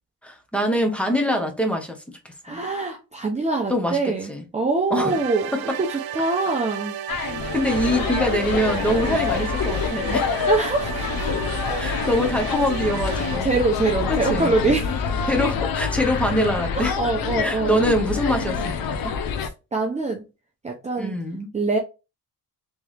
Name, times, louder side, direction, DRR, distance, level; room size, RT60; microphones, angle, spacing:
voice 1, 0.2-2.0 2.5-2.6 3.7-4.0 4.3-4.4 4.9-5.2 5.5-5.8 7.5-10.5 11.8-13.5 14.1-14.5 15.3-17.0 17.4-18.7 19.0-19.1 21.0-21.5, equal, 5° left, 1.1 m, -24 dB
voice 2, 2.4-7.0 9.1-9.3 10.5-11.5 13.4-15.1 17.0-17.8 19.4-20.2 20.6-21.1 21.5-21.8, right 3 dB, 20° right, 0.8 m, -24 dB
sound 1, 5.1-13.4, right 11 dB, 80° right, 0.5 m, -33 dB
sound 2, 7.1-19.5, left 6 dB, 75° left, 0.8 m, -26 dB
3.4 x 3.2 x 3.3 m
cardioid pair, 105°, 36 cm